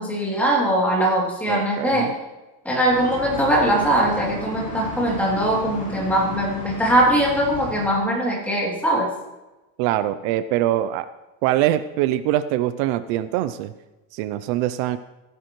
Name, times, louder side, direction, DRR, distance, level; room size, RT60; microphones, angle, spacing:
voice 1, 0.0-2.1 2.6-9.1, right 1 dB, 5° left, -4 dB, 2.8 m, -21 dB
voice 2, 1.5-2.1 9.8-11.1 11.4-13.7 14.1-15.0, right 13 dB, 55° right, 13 dB, 0.5 m, -23 dB
sound 1, 2.9-7.9, left 1 dB, 20° left, 4.2 m, -35 dB
17.0 x 10.5 x 3.1 m, 1.1 s
cardioid pair, 170°, 36 cm